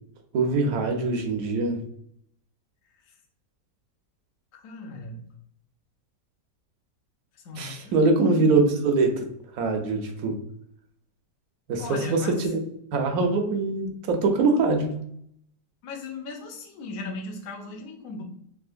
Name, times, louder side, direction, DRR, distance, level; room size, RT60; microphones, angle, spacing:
voice 1, 0.3-1.8 7.6-9.3 9.5-10.4 11.7-12.6 12.9-14.9, right 3 dB, 70° right, 4 dB, 0.9 m, -23 dB
voice 2, 4.5-5.2 7.3-8.6 11.8-12.5 15.8-18.2, left 3 dB, 60° left, 1 dB, 1.0 m, -38 dB
3.6 x 2.8 x 2.4 m, 0.69 s
omnidirectional pair, 1.8 m